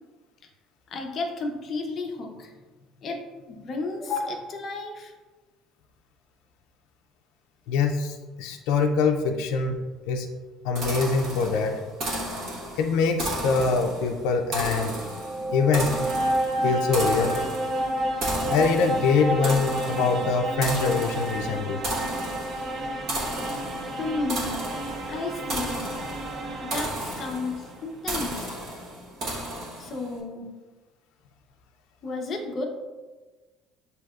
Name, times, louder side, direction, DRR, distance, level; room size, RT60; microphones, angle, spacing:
voice 1, 0.9-2.5 3.0-5.1 15.4-15.5 16.5-16.8 24.0-24.6 25.1-25.9 26.6-28.5 29.4-29.5 29.8-30.5 32.0-32.6, left 3 dB, 30° left, 2 dB, 0.6 m, -33 dB
voice 2, 7.7-9.8 10.1-10.3 10.6-11.8 12.8-15.0 15.5-16.0 16.6-17.4 18.5-21.8, left 4 dB, 80° left, 3 dB, 0.4 m, -24 dB
sound 1, 10.8-30.1, right 1 dB, 45° right, 1.1 m, -34 dB
sound 2, 14.9-27.7, right 1 dB, 30° right, 0.4 m, -30 dB
7.5 x 2.7 x 2.3 m, 1.3 s
cardioid pair, 175°, 0 cm